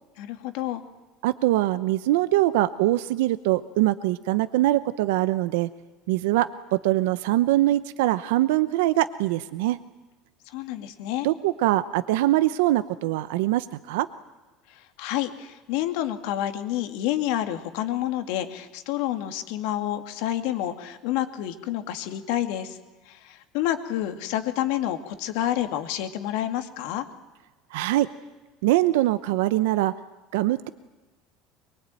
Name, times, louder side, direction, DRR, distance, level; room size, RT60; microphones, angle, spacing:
voice 1, 0.2-0.8 10.5-11.3 15.0-22.8 23.1-27.0, left 12 dB, 70° left, 8 dB, 2.3 m, -29 dB
voice 2, 1.2-5.7 6.1-6.5 6.8-9.8 11.2-14.1 27.7-28.1 28.6-29.9 30.3-30.7, right 16 dB, 90° right, 13 dB, 0.8 m, -23 dB
24.0 x 22.5 x 9.1 m, 1.2 s
cardioid pair, 150°, 0 cm